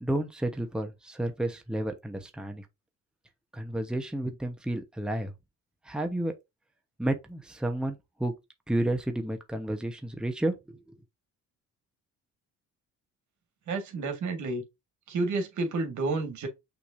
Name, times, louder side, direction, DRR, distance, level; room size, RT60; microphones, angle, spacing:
voice 1, 0.0-2.7 3.5-5.3 5.8-6.3 7.0-8.3 8.7-11.0, right 1 dB, 5° right, 0.9 m, -31 dB
voice 2, 13.7-14.6 15.1-16.5, right 3 dB, 75° right, 1.8 m, -30 dB
6.0 x 3.3 x 2.6 m
cardioid pair, 90°, 30 cm